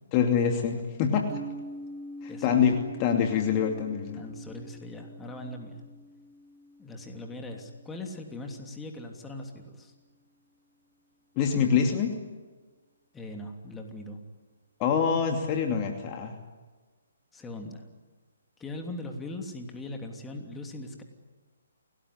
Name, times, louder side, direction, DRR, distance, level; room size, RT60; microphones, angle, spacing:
voice 1, 0.1-1.3 2.2-4.2 11.4-12.1 14.8-16.3, left 7 dB, 30° left, 3 dB, 2.7 m, -25 dB
sound 1, 1.3-9.1, right 1 dB, 20° right, 1.4 m, -45 dB
voice 2, 2.3-2.6 4.1-5.8 6.8-9.9 13.1-14.2 17.3-17.8 18.6-21.0, left 2 dB, 10° left, 3 dB, 3.1 m, -40 dB
28.5 x 19.0 x 10.0 m, 1.3 s
figure-of-eight pair, 140°, 0 cm